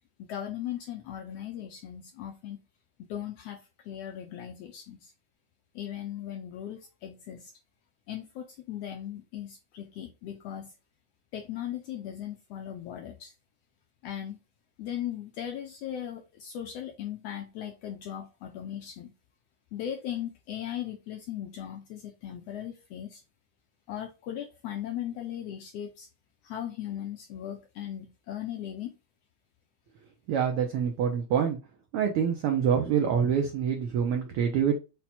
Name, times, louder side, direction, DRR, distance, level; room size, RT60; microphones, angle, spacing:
voice 1, 0.2-2.6 3.1-5.1 5.7-7.5 8.1-10.7 11.3-13.3 14.0-14.4 14.8-19.1 19.7-23.2 23.9-26.1 26.4-28.9, left 10 dB, 80° left, 1.4 m, -38 dB
voice 2, 30.3-31.6 31.9-34.7, right 8 dB, 85° right, 1.2 m, -26 dB
5.7 x 2.2 x 4.2 m
omnidirectional pair, 3.3 m